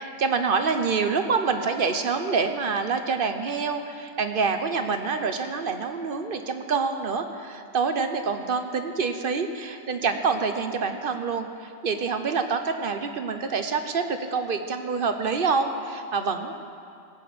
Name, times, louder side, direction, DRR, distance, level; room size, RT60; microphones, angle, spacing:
voice 1, 0.0-16.5, right 5 dB, 55° right, 7 dB, 0.9 m, -26 dB
16.5 x 6.1 x 8.4 m, 2.5 s
omnidirectional pair, 1.2 m